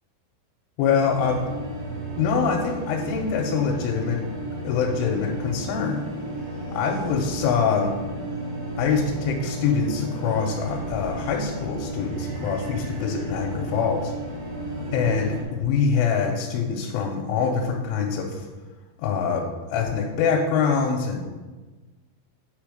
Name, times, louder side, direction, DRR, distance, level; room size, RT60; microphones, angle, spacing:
voice 1, 0.8-1.4 2.2-4.2 4.6-6.0 6.7-8.0 8.8-14.1 14.9-18.5 19.0-19.5 19.7-21.2, left 6 dB, 85° left, 0 dB, 3.1 m, -24 dB
sound 1, 1.0-15.4, right 1 dB, 60° right, 1.8 m, -33 dB
9.0 x 3.4 x 5.0 m, 1.3 s
omnidirectional pair, 5.6 m